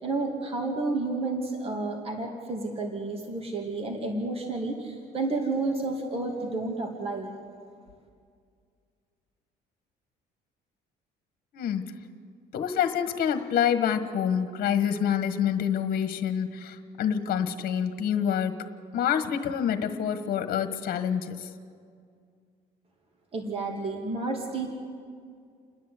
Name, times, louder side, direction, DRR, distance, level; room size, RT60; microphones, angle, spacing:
voice 1, 0.0-7.3 23.3-24.7, right 3 dB, 35° right, 1 dB, 2.7 m, -31 dB
voice 2, 11.5-11.9 12.5-18.5 18.9-21.5, left 8 dB, 60° left, 9 dB, 1.4 m, -27 dB
29.5 x 10.5 x 8.4 m, 2.2 s
cardioid pair, 110°, 17 cm